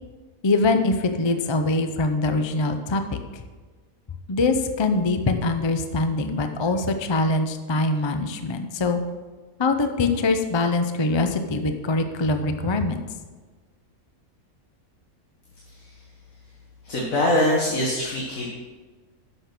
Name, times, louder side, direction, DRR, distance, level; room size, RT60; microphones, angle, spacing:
voice 1, 0.4-3.0 3.3-3.4 4.3-9.0 9.6-13.0, left 3 dB, 30° left, 7 dB, 0.5 m, -23 dB
voice 2, 16.8-18.5, left 1 dB, 65° left, -3 dB, 2.0 m, -23 dB
10.5 x 6.6 x 6.1 m, 1.4 s
omnidirectional pair, 1.5 m